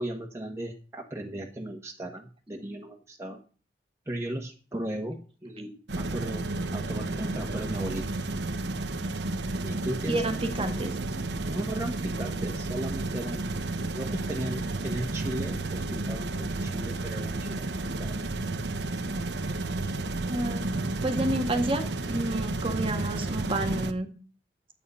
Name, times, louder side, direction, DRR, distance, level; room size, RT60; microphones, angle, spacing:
voice 1, 0.0-3.4 4.1-6.4 6.7-8.0 9.6-11.0 11.4-13.5 13.9-18.2, right 1 dB, 15° right, 0 dB, 1.3 m, -36 dB
sound 1, 5.9-23.9, right 2 dB, 70° right, 1.0 m, -32 dB
voice 2, 10.1-10.9 20.3-20.6 21.0-24.1, right 1 dB, 30° right, 6 dB, 1.7 m, -29 dB
11.0 x 8.5 x 5.5 m, 0.39 s
head